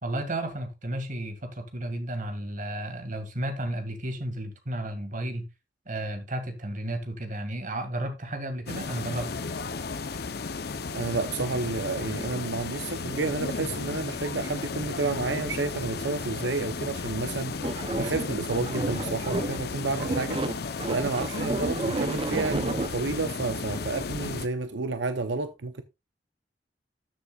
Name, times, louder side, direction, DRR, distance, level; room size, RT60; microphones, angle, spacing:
voice 1, 0.0-5.5 5.9-9.3, right 1 dB, 45° right, 1.9 m, -33 dB
sound 1, 8.7-24.5, left 4 dB, 60° left, 0.7 m, -34 dB
voice 2, 10.9-20.4 20.9-25.8, right 3 dB, 85° right, 0.7 m, -30 dB
sound 2, 17.6-19.7 20.0-22.9, right 2 dB, 30° right, 0.6 m, -31 dB
13.0 x 7.1 x 2.4 m
head